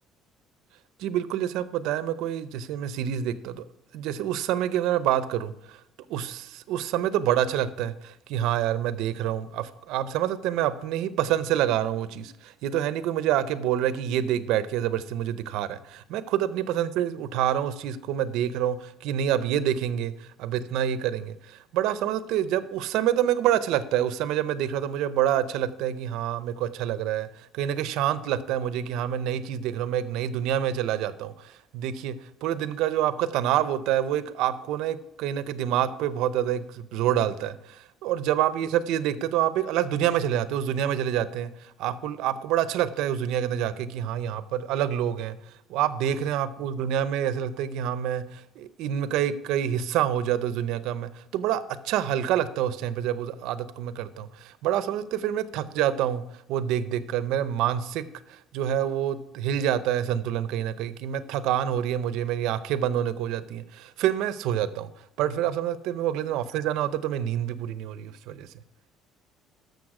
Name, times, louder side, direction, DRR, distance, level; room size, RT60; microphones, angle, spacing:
voice 1, 1.0-3.6 3.9-5.8 6.1-45.4 45.7-56.2 56.5-64.9 65.2-68.5, right 10 dB, 75° right, 14 dB, 0.7 m, -27 dB
13.0 x 6.7 x 4.9 m, 0.80 s
cardioid pair, 135°, 0 cm